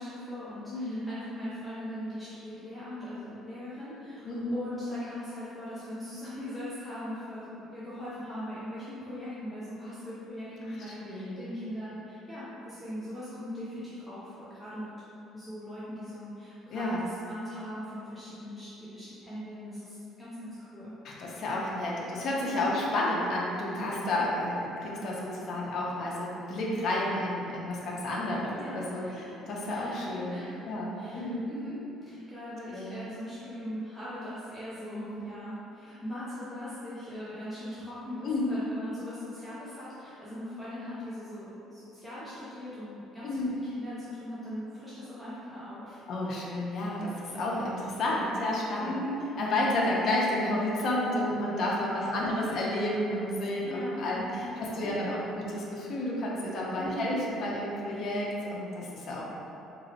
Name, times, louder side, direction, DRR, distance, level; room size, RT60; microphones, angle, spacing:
voice 1, 0.0-14.9 15.3-20.9 22.5-22.8 28.5-29.3 29.7-46.1 48.8-49.1 52.0-52.1 53.6-54.9 56.7-57.1, left 1 dB, ahead, -11 dB, 0.6 m, -40 dB
voice 2, 0.7-1.0 4.2-4.5 10.6-10.7 11.0-11.4 16.7-17.0 21.0-29.0 29.5-31.5 32.7-32.9 34.9-35.1 38.2-38.4 43.2-43.5 46.1-48.9 49.4-59.3, left 1 dB, 50° left, -4 dB, 0.7 m, -31 dB
4.0 x 3.0 x 2.8 m, 2.9 s
cardioid pair, 155°, 0 cm